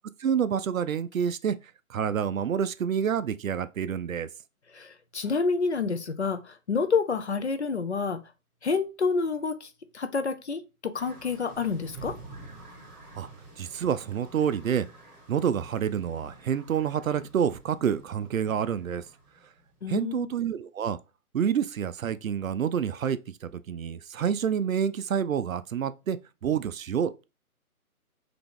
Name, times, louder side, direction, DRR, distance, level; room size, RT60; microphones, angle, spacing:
voice 1, 0.2-1.6 1.9-4.3 13.2-13.3 13.6-14.9 15.3-19.0 19.9-21.0 21.3-27.2, right 8 dB, 65° right, 0.5 m, -28 dB
voice 2, 4.7-8.2 8.6-12.2 19.8-20.3, left 5 dB, 50° left, 0.5 m, -28 dB
sound 1, 10.9-20.0, right 2 dB, 30° right, 2.2 m, -49 dB
3.9 x 2.9 x 3.5 m
hypercardioid pair, 175°, 45 cm